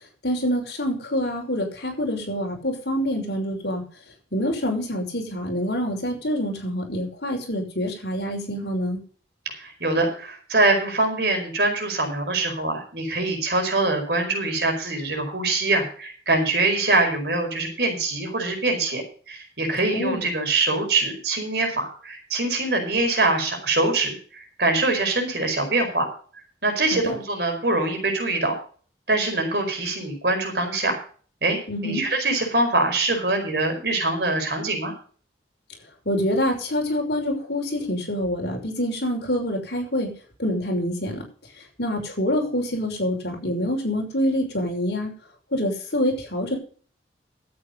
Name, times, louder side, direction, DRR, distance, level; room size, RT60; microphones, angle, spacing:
voice 1, 0.2-3.8 4.3-9.0 19.9-20.2 26.9-27.1 31.7-32.0 36.1-40.1 40.4-41.2 41.8-45.1 45.5-46.6, equal, 65° left, 2 dB, 5.7 m, -26 dB
voice 2, 9.5-26.1 26.6-28.5 29.1-31.0 31.4-34.9, right 2 dB, 65° right, 4 dB, 5.1 m, -24 dB
12.5 x 8.8 x 5.5 m, 0.42 s
head